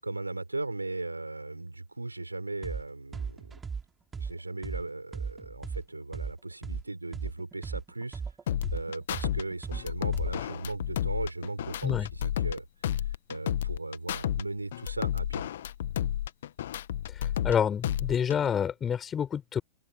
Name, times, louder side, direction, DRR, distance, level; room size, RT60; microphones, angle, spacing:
voice 1, 0.0-3.6 4.2-8.2 8.7-15.5, right 2 dB, 85° right, 5.5 m, -37 dB
sound 1, 2.6-2.8 3.1-6.8 7.1-10.6, right 5 dB, 15° right, 4.8 m, -37 dB
sound 2, 8.5-9.4 9.7-12.6 12.8-14.4 14.7-17.5 17.8-18.5, left 11 dB, 60° left, 1.7 m, -31 dB
voice 2, 17.4-19.6, left 8 dB, 25° left, 7.1 m, -28 dB
open air
figure-of-eight pair, 90°, 0 cm